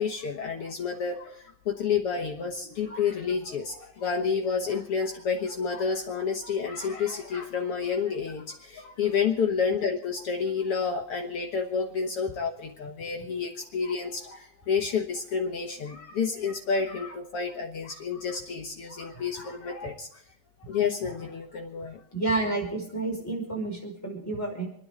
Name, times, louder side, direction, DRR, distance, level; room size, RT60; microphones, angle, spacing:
voice 1, 0.0-20.2 20.6-22.0, left 6 dB, 70° left, 2 dB, 1.4 m, -30 dB
voice 2, 22.1-24.7, right 2 dB, 5° left, -1 dB, 4.9 m, -30 dB
28.5 x 10.0 x 3.8 m, 0.71 s
omnidirectional pair, 4.4 m